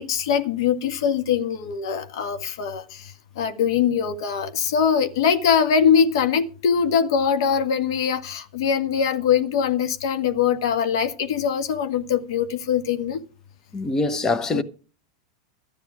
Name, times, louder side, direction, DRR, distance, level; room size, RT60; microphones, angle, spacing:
voice 1, 0.0-2.8 3.4-13.2 14.5-14.6, left 7 dB, 75° left, 1.6 m, -22 dB
voice 2, 13.7-14.6, left 3 dB, 20° left, 1.2 m, -23 dB
13.0 x 9.5 x 4.9 m
hypercardioid pair, 120°, 2 cm